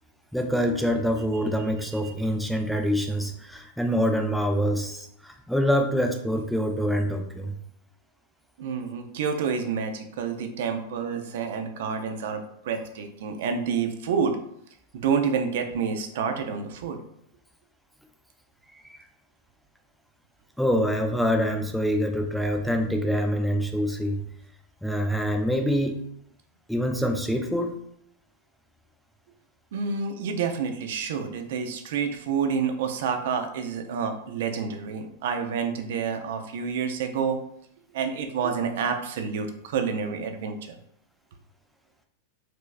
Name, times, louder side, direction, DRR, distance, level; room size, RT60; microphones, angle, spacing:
voice 1, 0.3-7.6 18.9-19.0 20.6-24.2 24.8-26.0 26.7-27.8, equal, ahead, 3 dB, 0.3 m, -25 dB
voice 2, 8.6-14.4 15.0-17.0 29.7-37.4 37.9-40.8, right 6 dB, 70° right, 7 dB, 0.4 m, -28 dB
4.5 x 2.0 x 2.5 m, 0.71 s
supercardioid pair, 130°, 0 cm